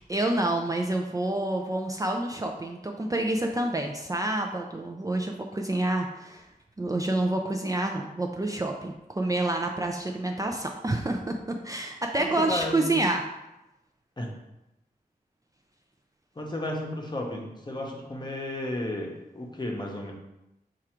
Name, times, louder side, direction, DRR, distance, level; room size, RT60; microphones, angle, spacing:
voice 1, 0.0-6.5 6.8-11.4 11.6-13.2, right 2 dB, 20° right, 1 dB, 0.4 m, -28 dB
voice 2, 12.2-13.0 14.2-14.3 16.4-20.1, left 1 dB, 25° left, 0 dB, 0.8 m, -33 dB
4.7 x 2.5 x 4.4 m, 0.92 s
wide cardioid pair, 85°, 16 cm